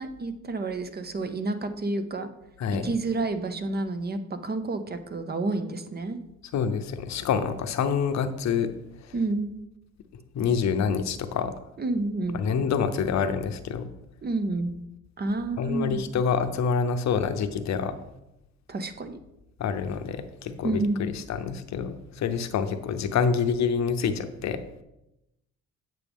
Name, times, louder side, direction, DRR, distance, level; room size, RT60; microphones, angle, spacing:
voice 1, 0.0-2.3 2.8-6.2 9.1-9.5 11.8-12.4 14.2-14.7 15.2-16.0 18.7-19.2 20.6-21.1, right 2 dB, 30° right, 9 dB, 0.7 m, -29 dB
voice 2, 2.6-2.9 6.5-8.7 9.0-9.1 10.3-11.5 12.3-13.9 15.6-17.9 19.6-24.6, left 6 dB, 65° left, 9 dB, 0.7 m, -27 dB
8.5 x 6.1 x 3.5 m, 0.90 s
cardioid pair, 90°, 30 cm